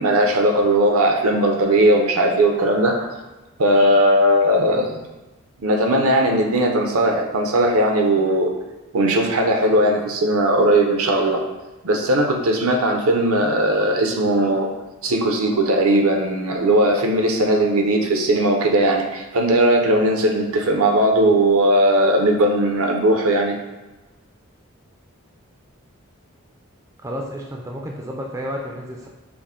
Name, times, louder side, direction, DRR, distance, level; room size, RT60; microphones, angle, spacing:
voice 1, 0.0-3.1 3.6-5.0 5.6-8.5 8.9-11.4 11.8-14.7 15.0-23.6, right 1 dB, 75° right, 3 dB, 0.6 m, -18 dB
voice 2, 27.0-29.1, equal, 15° right, 0 dB, 0.3 m, -31 dB
6.0 x 2.1 x 3.6 m, 1.1 s
head